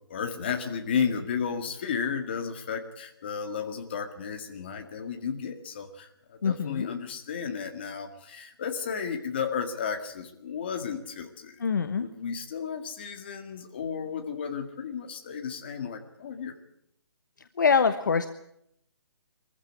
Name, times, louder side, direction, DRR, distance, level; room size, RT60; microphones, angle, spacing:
voice 1, 0.1-11.6 12.0-16.5, left 6 dB, 25° left, 4 dB, 1.9 m, -33 dB
voice 2, 6.4-6.9 11.6-12.1 17.6-18.3, left 5 dB, 45° left, 9 dB, 1.1 m, -24 dB
23.0 x 15.0 x 9.9 m, 0.76 s
hypercardioid pair, 180°, 14 cm